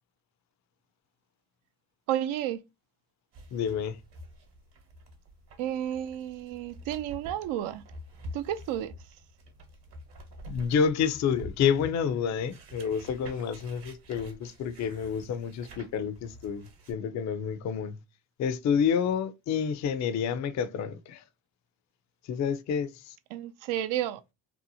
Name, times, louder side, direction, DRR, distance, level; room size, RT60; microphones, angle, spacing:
voice 1, 2.1-2.6 5.6-7.8 8.3-8.9 23.3-24.2, right 11 dB, 70° right, 0.5 m, -31 dB
sound 1, 3.3-16.9, equal, 55° right, 1.1 m, -48 dB
voice 2, 3.5-4.0 10.5-18.0 18.4-21.2 22.3-23.1, left 7 dB, 40° left, 0.4 m, -29 dB
2.8 x 2.0 x 2.7 m
supercardioid pair, 65°, 49 cm